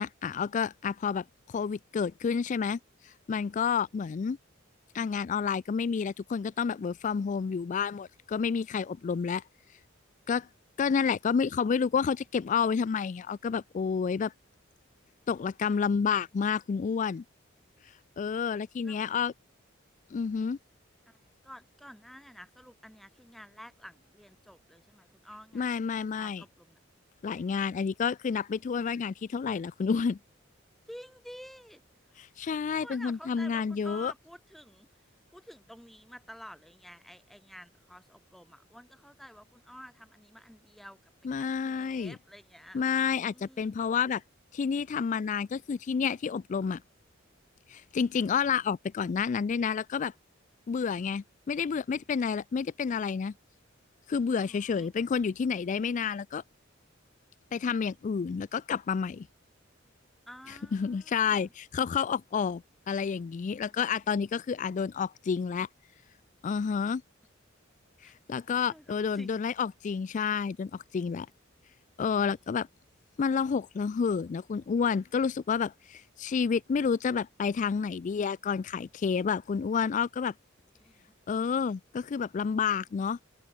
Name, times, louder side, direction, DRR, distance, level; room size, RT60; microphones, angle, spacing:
voice 1, 0.0-4.4 4.9-9.4 10.3-10.5 10.8-14.3 15.3-17.2 18.2-19.3 20.1-20.6 25.5-26.4 27.2-30.2 32.2-34.1 41.2-42.2 42.7-44.2 44.5-46.8 47.7-50.1 50.7-53.3 54.1-56.4 57.5-59.3 60.7-65.7 66.4-67.0 68.0-71.3 72.0-72.7 73.2-80.3 81.3-83.2, left 6 dB, 40° left, 0.3 m, -30 dB
voice 2, 21.1-25.8 26.1-26.8 30.9-32.2 32.8-34.9 35.3-42.8 43.3-43.8 54.3-54.9 60.3-61.5 63.7-63.8 68.0-68.2 68.7-69.4 72.4-72.5 80.8-81.1, equal, ahead, 7.9 m, -50 dB
head